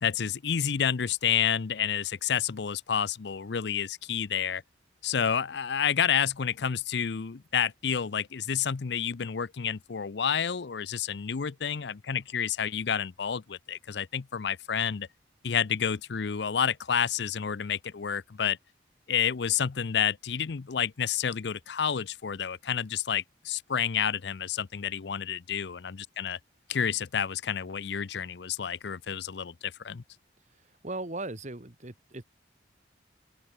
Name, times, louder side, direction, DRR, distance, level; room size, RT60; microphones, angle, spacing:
voice 1, 0.0-4.6 5.0-15.1 15.4-18.6 19.1-26.4 26.7-30.0, left 8 dB, 60° left, 0.5 m, -29 dB
voice 2, 30.5-32.2, right 2 dB, 40° right, 1.6 m, -38 dB
open air
head